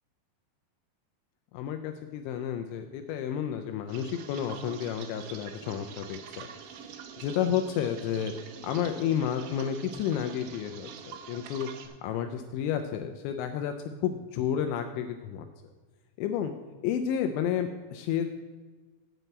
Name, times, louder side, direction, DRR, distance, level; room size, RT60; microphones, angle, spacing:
voice 1, 1.5-6.5 7.2-8.3 8.6-11.7 12.0-13.7 14.0-15.5 16.2-16.5 16.8-18.3, left 9 dB, 85° left, 6 dB, 2.7 m, -31 dB
sound 1, 3.9-11.9, right 7 dB, 80° right, 3.0 m, -45 dB
9.2 x 5.5 x 8.0 m, 1.4 s
omnidirectional pair, 5.4 m